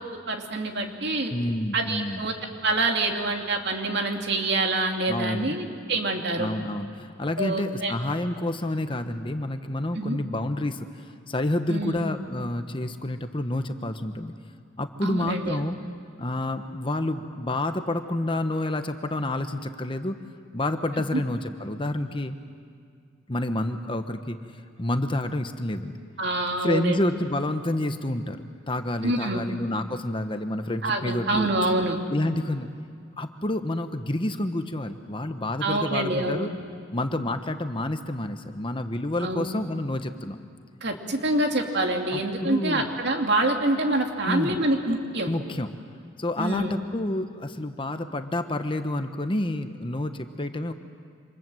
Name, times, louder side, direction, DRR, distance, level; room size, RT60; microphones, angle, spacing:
voice 1, 0.1-1.3 1.7-2.3 2.6-6.5 7.4-7.9 9.9-10.2 11.7-12.0 15.0-15.6 21.1-21.2 26.2-27.0 29.0-29.4 30.8-32.0 35.6-36.5 39.2-39.5 40.8-45.3 46.4-46.7, right 2 dB, 60° right, 3 dB, 2.6 m, -26 dB
voice 2, 1.3-2.2 5.1-5.6 6.4-14.3 14.8-15.8 16.2-20.2 20.5-22.4 23.3-24.4 24.8-26.0 26.6-31.5 32.1-32.7 33.2-36.5 36.9-40.4 42.1-42.9 44.2-44.6 45.3-45.7 46.2-50.7, left 1 dB, 25° left, 8 dB, 1.1 m, -29 dB
28.0 x 26.5 x 7.8 m, 2.2 s
head